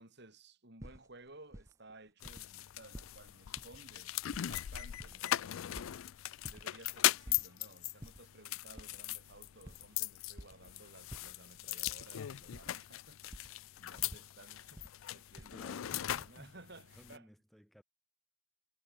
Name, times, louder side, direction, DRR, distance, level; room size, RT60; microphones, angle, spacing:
voice 1, 0.0-4.1 4.5-6.0 6.5-17.3, right 2 dB, 55° right, 5.4 m, -57 dB
sound 1, 0.8-1.9 2.2-2.5 2.7-3.1 3.6-3.8 4.1-6.0 6.4-6.6 6.9-7.5 7.9-8.2 8.7-10.6 11.1-12.1 12.3-12.8 13.3-13.5 14.0-14.9 15.3-16.3, equal, 15° right, 2.0 m, -51 dB
sound 2, 2.2-17.2, left 14 dB, 85° left, 0.4 m, -39 dB
voice 2, 15.1-16.6 16.9-17.8, equal, ahead, 3.3 m, -58 dB
head